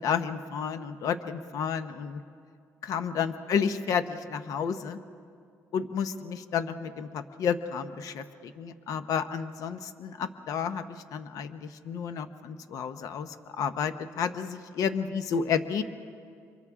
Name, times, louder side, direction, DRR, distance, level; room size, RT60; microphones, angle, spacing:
voice 1, 0.0-2.2 2.8-5.0 5.7-15.8, left 7 dB, 70° left, 10 dB, 0.8 m, -31 dB
29.5 x 24.5 x 3.7 m, 2.3 s
cardioid pair, 140°, 6 cm